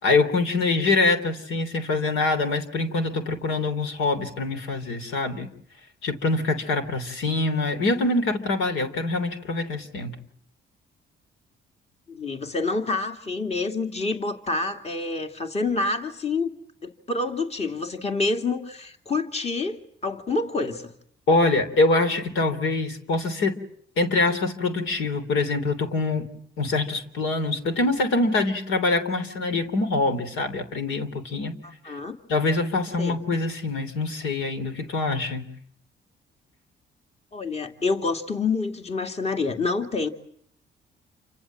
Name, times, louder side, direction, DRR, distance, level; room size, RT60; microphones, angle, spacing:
voice 1, 0.0-5.5 6.0-10.1 21.3-23.5 24.0-26.3 26.6-31.5 31.8-31.9 32.3-35.4, left 3 dB, 85° left, 9 dB, 3.3 m, -24 dB
voice 2, 12.1-16.5 16.8-20.9 31.6-32.2 33.0-33.2 37.3-40.1, left 3 dB, 30° left, 6 dB, 2.4 m, -27 dB
28.5 x 25.5 x 7.5 m, 0.66 s
cardioid pair, 90°, 20 cm